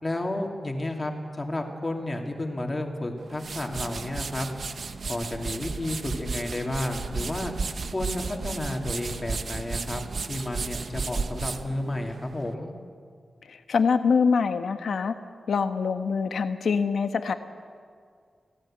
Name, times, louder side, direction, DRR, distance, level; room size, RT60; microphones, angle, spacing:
voice 1, 0.0-4.5 5.1-7.5 7.9-10.0 10.3-12.7, left 1 dB, 20° left, 2 dB, 2.7 m, -31 dB
sound 1, 3.2-12.5, right 4 dB, 55° right, 1.0 m, -34 dB
voice 2, 13.5-15.1 15.5-17.3, left 5 dB, 85° left, 8 dB, 1.3 m, -24 dB
25.0 x 17.0 x 8.9 m, 2.1 s
wide cardioid pair, 145°, 0 cm